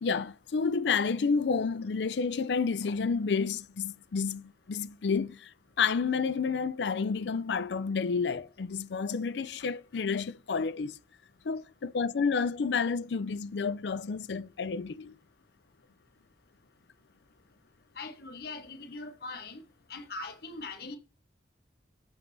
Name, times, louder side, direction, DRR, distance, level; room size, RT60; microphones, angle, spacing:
voice 1, 0.0-5.5 5.8-10.9 11.4-15.1, left 5 dB, 80° left, 0.5 m, -30 dB
voice 2, 18.0-19.6 19.9-21.0, left 3 dB, 60° left, 1.1 m, -41 dB
7.3 x 5.7 x 2.7 m
head